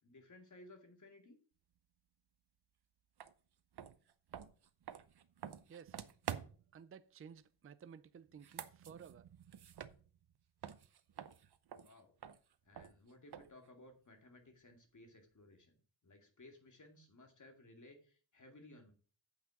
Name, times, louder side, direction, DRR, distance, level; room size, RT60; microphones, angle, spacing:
voice 1, 0.0-1.4 11.7-12.1 12.6-18.9, left 2 dB, 40° left, 2.4 m, -59 dB
sound 1, 3.2-3.3 3.7-6.8 8.3-10.4 10.6-13.7, right 9 dB, 55° right, 0.8 m, -49 dB
voice 2, 5.7-6.0 6.7-9.3, right 7 dB, 30° right, 0.5 m, -55 dB
8.8 x 5.9 x 6.0 m
wide cardioid pair, 115°, 47 cm